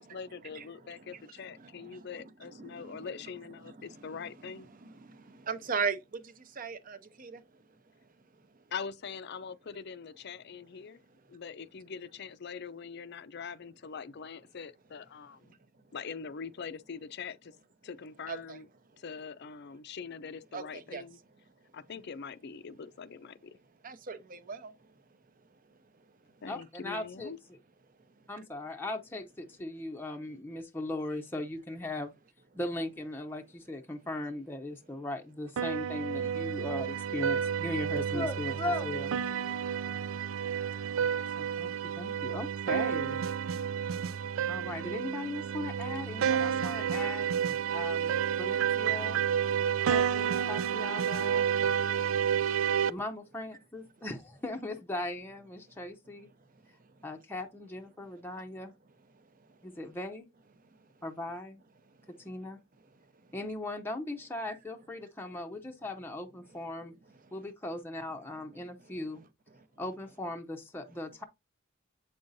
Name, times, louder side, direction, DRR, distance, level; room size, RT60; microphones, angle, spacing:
voice 1, 0.0-4.7 8.7-11.0 11.3-15.6 15.9-17.5 17.8-18.7 19.0-21.2 21.7-23.6 26.4-27.4, left 6 dB, 55° left, 0.5 m, -43 dB
voice 2, 0.5-3.0 3.6-4.5 4.8-7.6 8.5-8.6 15.5-15.6 18.3-18.6 20.5-21.0 23.8-24.9 25.7-26.1 28.2-28.3 41.0-41.1 49.7-49.9 56.5-57.0 59.1-59.8 60.6-60.9 62.0-62.3 62.9-63.3 67.2-67.4 68.8-68.9 69.5-69.7, right 5 dB, 40° right, 0.8 m, -41 dB
voice 3, 26.5-27.3 28.3-32.1 32.5-39.1 41.4-43.2 44.5-49.2 49.8-51.5 52.9-56.3 57.0-58.7 59.6-60.3 61.0-61.6 62.2-62.6 63.3-66.9 67.3-69.2 69.8-71.2, left 2 dB, 10° left, 0.6 m, -38 dB
sound 1, 35.6-52.9, right 8 dB, 80° right, 0.4 m, -30 dB
7.9 x 5.3 x 2.6 m
head